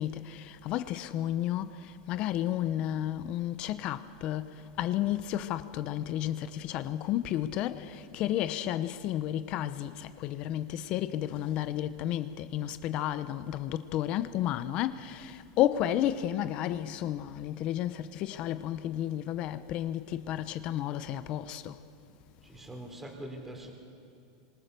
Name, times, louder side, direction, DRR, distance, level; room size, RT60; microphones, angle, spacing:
voice 1, 0.0-21.8, left 12 dB, 40° left, 0.9 m, -32 dB
voice 2, 22.4-23.7, right 1 dB, 10° right, 3.6 m, -43 dB
29.0 x 26.0 x 6.8 m
supercardioid pair, 150°, 3 cm